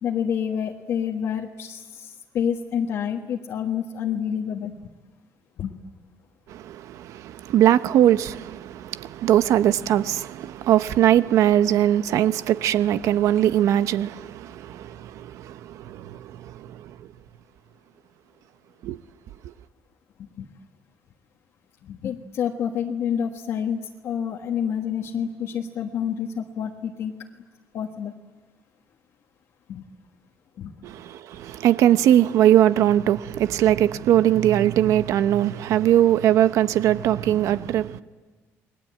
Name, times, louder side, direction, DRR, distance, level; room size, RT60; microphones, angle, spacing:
voice 1, 0.0-4.8 5.6-5.8 20.2-20.5 21.8-27.1 27.7-28.1 29.7-29.8 30.6-30.7, left 8 dB, 55° left, 1.5 m, -28 dB
voice 2, 6.5-17.1 18.8-19.0 30.8-38.0, right 11 dB, 70° right, 0.9 m, -21 dB
30.0 x 21.5 x 8.8 m
cardioid pair, 170°, 6 cm